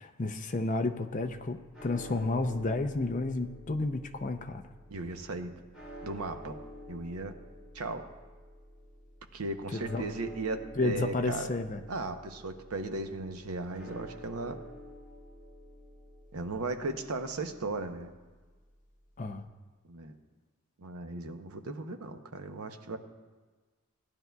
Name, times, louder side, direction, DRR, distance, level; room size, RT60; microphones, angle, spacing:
voice 1, 0.0-4.6 9.7-10.0 10.8-11.8 19.2-19.5, left 2 dB, 35° left, 7 dB, 0.5 m, -31 dB
sound 1, 1.1-19.5, equal, 5° right, 3.1 m, -50 dB
voice 2, 4.9-5.5 6.0-6.6 6.9-7.3 7.7-8.1 9.3-11.5 11.9-14.6 16.3-18.1 19.9-20.1 20.8-23.0, right 2 dB, 80° right, 7 dB, 0.8 m, -36 dB
17.0 x 10.5 x 2.3 m, 1.4 s
head